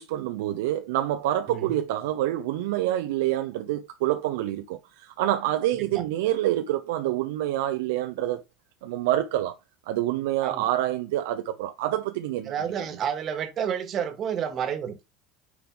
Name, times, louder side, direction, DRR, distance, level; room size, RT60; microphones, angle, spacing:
voice 1, 0.0-8.4 8.8-9.5 9.9-12.5, right 13 dB, 65° right, 0.5 m, -27 dB
voice 2, 1.5-1.8 5.7-6.0 10.4-10.7 12.4-15.0, right 8 dB, 40° right, 1.5 m, -30 dB
9.5 x 3.4 x 3.7 m
figure-of-eight pair, 70°, 0 cm